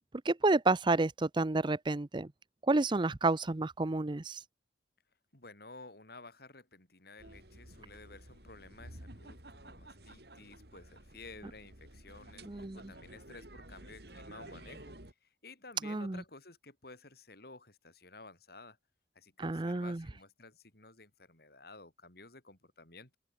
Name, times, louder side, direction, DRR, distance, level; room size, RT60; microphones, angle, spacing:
voice 1, 0.2-2.3 2.7-4.4 12.5-12.8 15.8-16.2 19.4-20.0, right 2 dB, 25° right, 0.6 m, -30 dB
voice 2, 5.3-18.8 19.1-23.2, left 3 dB, 60° left, 4.6 m, -53 dB
sound 1, 7.2-15.1, right 1 dB, 65° right, 6.8 m, -52 dB
head